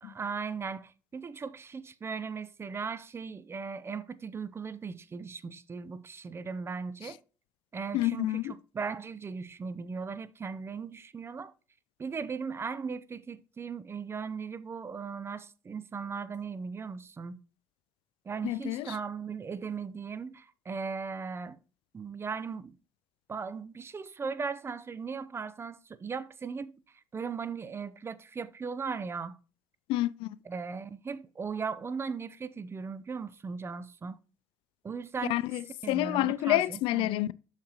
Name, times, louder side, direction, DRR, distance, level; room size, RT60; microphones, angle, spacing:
voice 1, 0.0-7.2 7.7-11.5 12.0-17.4 18.3-21.6 21.9-22.8 23.3-26.7 27.1-29.4 30.5-34.2 34.8-35.4 35.8-37.1, right 5 dB, 30° right, 0.6 m, -38 dB
voice 2, 7.9-8.5 18.4-19.0 29.9-30.4 35.3-37.3, left 16 dB, 80° left, 0.4 m, -29 dB
7.2 x 6.6 x 2.9 m
cardioid pair, 100°, 9 cm